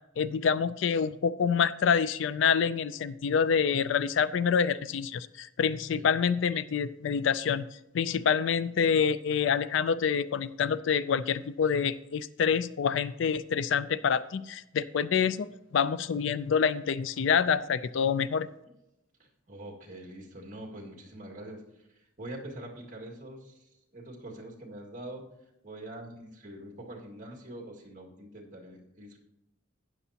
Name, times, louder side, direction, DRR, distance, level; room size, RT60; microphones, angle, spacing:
voice 1, 0.2-7.6 7.9-15.5 15.7-18.5, left 6 dB, 65° left, 16 dB, 0.4 m, -27 dB
voice 2, 19.2-25.2 25.6-29.2, right 1 dB, 40° right, -1 dB, 2.0 m, -44 dB
12.5 x 9.4 x 2.8 m, 0.86 s
head